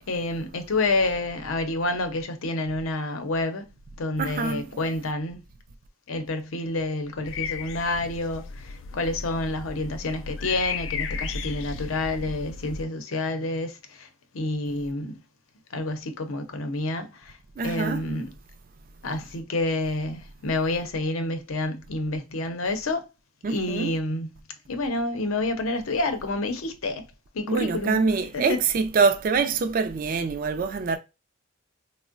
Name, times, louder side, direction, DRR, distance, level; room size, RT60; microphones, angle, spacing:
voice 1, 0.1-3.7 4.0-5.4 6.1-14.1 14.3-15.2 15.7-17.4 17.6-18.3 19.0-23.1 23.5-24.3 24.7-27.0 27.3-28.0 28.3-28.6, left 2 dB, 80° left, 0.7 m, -28 dB
voice 2, 4.2-4.6 17.6-18.0 23.4-23.9 27.5-31.0, right 4 dB, 40° right, 0.3 m, -24 dB
sound 1, 7.2-12.8, left 5 dB, 60° left, 0.3 m, -35 dB
4.4 x 2.1 x 2.4 m
head